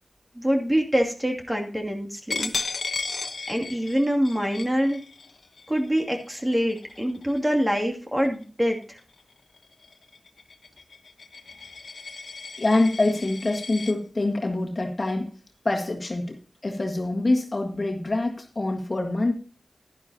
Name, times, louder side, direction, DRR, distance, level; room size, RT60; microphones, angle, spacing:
voice 1, 0.4-2.5 3.5-5.0 5.7-9.0, equal, 15° right, 2 dB, 2.5 m, -25 dB
Coin (dropping), 2.3-7.7 8.2-8.4 8.8-13.9, left 4 dB, 85° left, 1.0 m, -36 dB
voice 2, 12.6-15.3 15.7-16.4 16.6-19.3, left 2 dB, 45° left, 2 dB, 1.8 m, -25 dB
12.0 x 11.0 x 2.9 m, 0.37 s
wide cardioid pair, 65°, 0 cm